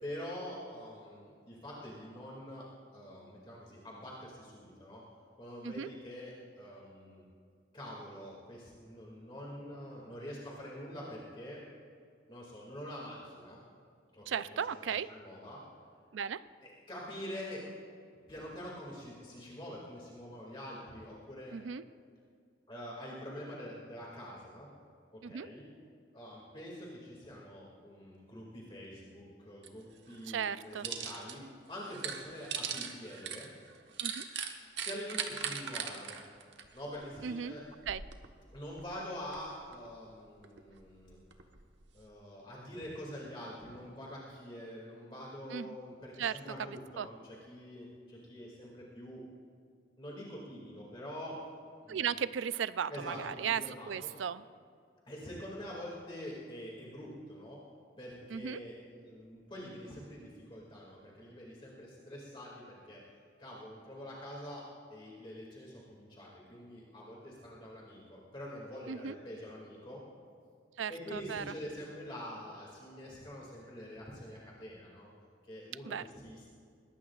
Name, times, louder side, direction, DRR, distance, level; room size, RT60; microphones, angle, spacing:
voice 1, 0.0-2.6 2.9-5.0 5.4-7.2 7.7-11.6 12.3-13.6 14.1-15.6 16.6-17.6 18.3-21.6 22.7-24.7 25.1-25.6 26.1-31.4 31.7-33.5 34.8-36.2 36.7-37.6 38.5-41.2 41.9-49.2 50.0-51.4 51.8-52.1 52.9-54.1 55.1-57.6 58.0-63.0 63.4-64.6 64.9-70.0 70.9-75.1 75.4-76.5, equal, 25° left, -4 dB, 2.3 m, -45 dB
voice 2, 14.3-15.1 16.1-16.4 21.5-21.8 25.2-25.5 30.3-30.9 34.0-34.2 37.2-37.5 37.9-38.0 45.5-45.7 46.2-46.4 47.0-47.1 51.9-54.4 58.3-58.6 68.9-69.2 70.8-71.5 75.9-76.0, right 7 dB, 90° right, 15 dB, 0.4 m, -36 dB
sound 1, 29.6-29.7 30.1-31.4 31.7-37.3 37.6-38.3 38.7-39.9 40.4-42.0, right 7 dB, 70° right, 1.2 m, -40 dB
21.5 x 18.5 x 2.4 m, 2.2 s
head